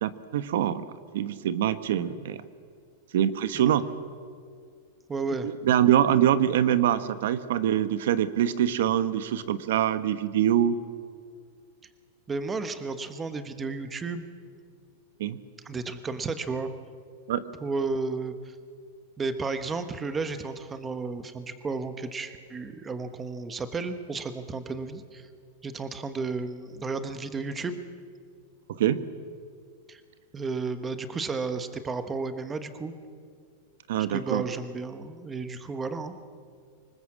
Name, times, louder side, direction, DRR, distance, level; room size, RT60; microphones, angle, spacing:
voice 1, 0.0-0.8 1.1-2.4 3.1-3.9 5.6-10.8 15.2-15.4 17.3-17.4 28.8-29.0 33.9-34.4, right 10 dB, 75° right, 13 dB, 1.2 m, -24 dB
voice 2, 5.1-5.5 12.3-14.3 15.6-16.7 17.6-18.5 19.2-25.3 25.6-27.8 29.9-30.0 30.3-32.9 34.1-36.2, right 4 dB, 15° right, 10 dB, 1.2 m, -33 dB
26.0 x 20.0 x 7.4 m, 2.1 s
supercardioid pair, 150°, 0 cm